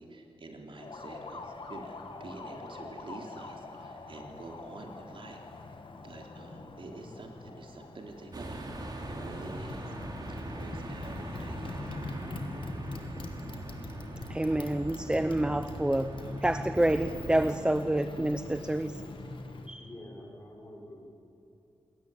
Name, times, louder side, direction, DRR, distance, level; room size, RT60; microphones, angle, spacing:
voice 1, 0.0-5.4 6.0-9.9 10.3-12.2, right 2 dB, 60° right, 2 dB, 3.6 m, -47 dB
Motorcycle, 0.8-19.7, left 2 dB, 60° left, 2.4 m, -43 dB
sound 1, 8.3-17.6, right 2 dB, 40° right, 3.3 m, -41 dB
voice 2, 14.3-16.1 16.4-19.0 19.7-19.9, right 1 dB, 10° right, 12 dB, 0.6 m, -28 dB
voice 3, 19.8-21.0, left 1 dB, 30° left, -1 dB, 6.1 m, -47 dB
28.0 x 21.5 x 9.3 m, 2.7 s
wide cardioid pair, 160°, 10 cm